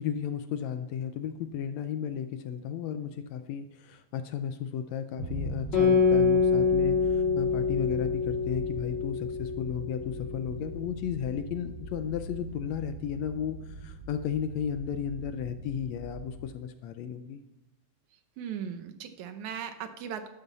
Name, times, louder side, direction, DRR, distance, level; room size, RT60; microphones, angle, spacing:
voice 1, 0.0-17.4, left 8 dB, 75° left, 9 dB, 1.7 m, -34 dB
sound 1, 5.2-16.4, right 2 dB, 30° right, 2.0 m, -41 dB
Guitar, 5.7-10.7, left 5 dB, 35° left, 4.2 m, -26 dB
voice 2, 18.4-20.3, right 8 dB, 75° right, 8 dB, 2.2 m, -38 dB
12.0 x 11.0 x 4.1 m, 0.96 s
omnidirectional pair, 3.5 m